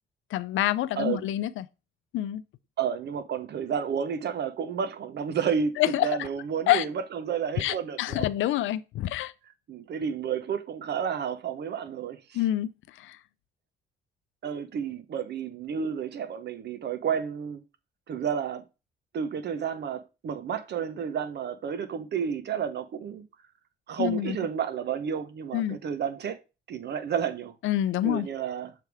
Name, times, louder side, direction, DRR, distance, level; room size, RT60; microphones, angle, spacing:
voice 1, 0.3-1.7 2.1-2.4 5.8-6.3 6.7-6.8 7.6-9.3 12.3-12.7 13.0-13.2 24.0-24.4 25.5-25.8 27.6-28.3, left 13 dB, 80° left, 0.5 m, -27 dB
voice 2, 1.0-1.3 2.8-8.3 9.7-12.4 14.4-17.6 18.1-18.6 19.1-23.2 23.9-26.4 26.7-27.5 28.0-28.7, right 7 dB, 60° right, 0.9 m, -31 dB
6.7 x 3.4 x 4.7 m
cardioid pair, 90°, 20 cm